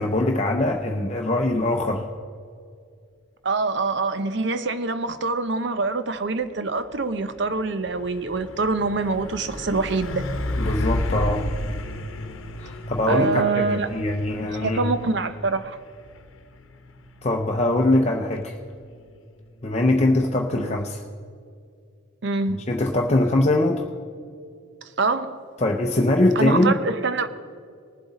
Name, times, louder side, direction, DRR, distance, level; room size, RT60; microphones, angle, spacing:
voice 1, 0.0-2.1 10.6-11.5 12.6-14.9 17.2-18.6 19.6-21.0 22.7-23.8 25.6-26.8, left 1 dB, 30° left, 0.6 m, -22 dB
voice 2, 3.4-10.3 13.1-13.9 14.4-15.8 20.6-20.8 22.2-22.6 25.0-25.4 26.4-27.3, right 3 dB, 60° right, 0.7 m, -25 dB
Truck, 6.2-20.5, left 1 dB, 80° left, 0.9 m, -34 dB
19.5 x 7.6 x 4.1 m
head